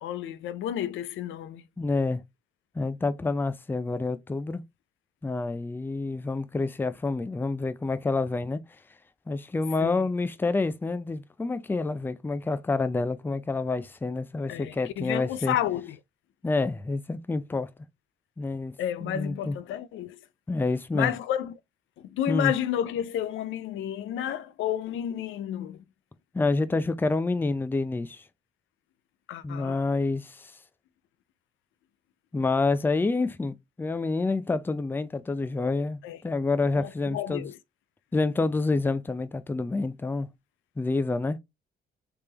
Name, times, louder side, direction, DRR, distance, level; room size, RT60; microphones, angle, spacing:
voice 1, 0.0-1.6 9.8-10.0 14.5-16.0 18.8-20.2 20.9-21.5 22.0-25.8 29.3-29.8 36.0-36.2 36.7-37.6, left 11 dB, 80° left, 0.4 m, -31 dB
voice 2, 1.8-2.2 2.8-4.6 5.2-8.6 9.3-15.6 16.4-17.7 18.4-18.7 19.0-19.6 20.5-21.1 22.3-22.5 26.3-28.2 29.4-30.5 32.3-37.5 38.1-40.3 40.8-41.4, left 3 dB, 10° left, 0.4 m, -28 dB
3.5 x 3.3 x 2.8 m
cardioid pair, 90°, 20 cm